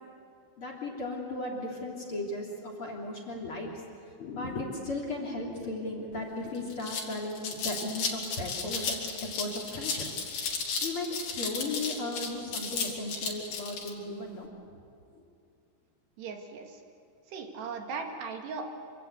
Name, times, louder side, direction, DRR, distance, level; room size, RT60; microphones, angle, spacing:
voice 1, 0.6-9.0 9.2-10.4 10.8-14.5 15.1-15.2, left 2 dB, 30° left, 1 dB, 3.5 m, -36 dB
sound 1, 6.1-6.2 6.5-13.9, left 5 dB, 50° left, 4.2 m, -34 dB
voice 2, 16.2-16.8 17.3-18.7, right 4 dB, 70° right, 2 dB, 4.0 m, -38 dB
27.0 x 25.5 x 8.4 m, 2.5 s
omnidirectional pair, 5.1 m